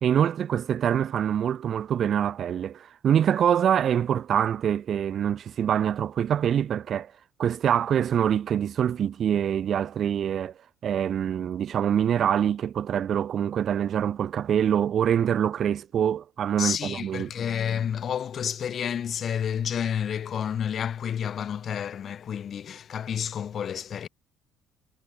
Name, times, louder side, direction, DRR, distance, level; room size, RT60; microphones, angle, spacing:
voice 1, 0.0-7.1 7.4-10.5 10.8-17.3, right 9 dB, 45° right, 0.8 m, -25 dB
voice 2, 16.6-24.1, left 8 dB, 45° left, 0.8 m, -30 dB
cardioid pair, 130°, 0 cm